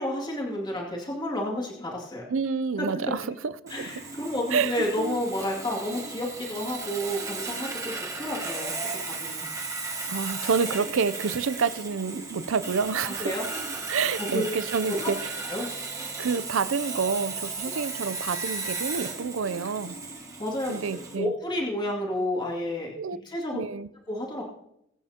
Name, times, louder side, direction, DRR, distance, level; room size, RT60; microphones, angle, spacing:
voice 1, 0.0-2.2 2.8-2.9 3.7-7.9 8.2-8.7 9.0-9.5 13.0-13.4 14.2-14.4 14.9-15.1 15.5-15.7 17.6-17.7 20.4-22.9 23.2-23.6 24.1-24.4, left 1 dB, 20° left, -3 dB, 2.4 m, -30 dB
voice 2, 2.3-3.9 4.5-5.2 10.1-13.3 13.9-15.3 16.2-20.0 20.7-21.3 23.0-23.2 23.5-23.9, right 5 dB, 75° right, 15 dB, 0.5 m, -28 dB
Sawing, 3.7-21.2, right 3 dB, 15° right, 1.7 m, -35 dB
21.5 x 9.0 x 2.9 m, 0.78 s
head